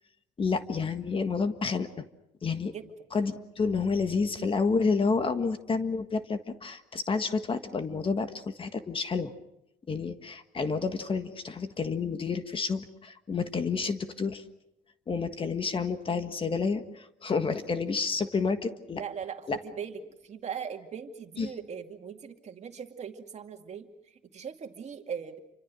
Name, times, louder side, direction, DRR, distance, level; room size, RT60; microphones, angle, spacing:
voice 1, 0.4-2.0 2.4-2.7 3.1-9.3 9.9-14.4 15.1-19.0 19.5-19.6 21.4-21.5, left 4 dB, 30° left, 9 dB, 1.6 m, -29 dB
voice 2, 18.9-25.4, right 7 dB, 40° right, 5 dB, 2.4 m, -40 dB
28.5 x 25.0 x 6.3 m, 0.85 s
cardioid pair, 110°, 17 cm